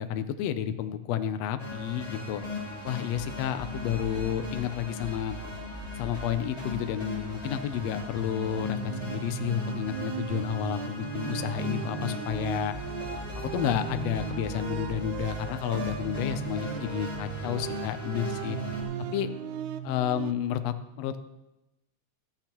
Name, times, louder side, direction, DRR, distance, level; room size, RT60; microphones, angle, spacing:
voice 1, 0.0-2.4 2.8-5.4 6.0-12.8 13.3-18.6 19.1-19.3 19.8-21.2, left 9 dB, 85° left, 9 dB, 1.4 m, -31 dB
sound 1, 1.6-18.8, left 2 dB, 10° left, 3.1 m, -38 dB
sound 2, 8.5-20.3, right 11 dB, 80° right, 1.7 m, -37 dB
14.5 x 13.5 x 3.0 m, 0.93 s
omnidirectional pair, 3.8 m